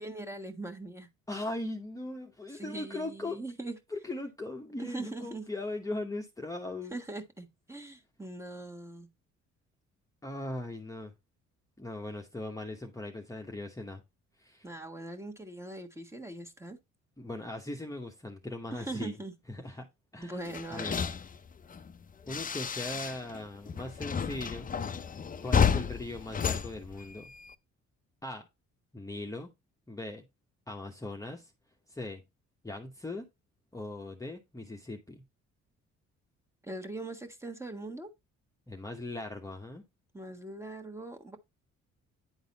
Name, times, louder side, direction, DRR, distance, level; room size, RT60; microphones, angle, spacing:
voice 1, 0.0-1.1 2.5-3.8 4.8-5.5 6.9-9.1 14.6-16.8 18.7-19.3 20.2-21.0 36.6-38.1 40.1-41.4, right 2 dB, 10° right, 1.4 m, -41 dB
voice 2, 1.3-3.4 3.9-7.0 10.2-11.1 11.8-14.0 14.4-14.6 17.2-19.2 19.5-19.9 20.1-20.4 20.7-21.0 22.3-24.7 25.4-27.2 28.2-28.5 28.9-29.5 29.9-30.3 30.7-31.5 31.9-32.2 32.6-33.2 33.7-35.2 38.7-39.8, left 2 dB, 10° left, 1.0 m, -39 dB
sound 1, 20.5-23.4 23.7-27.5, left 6 dB, 30° left, 0.6 m, -32 dB
9.7 x 4.0 x 4.0 m
cardioid pair, 90°, 30 cm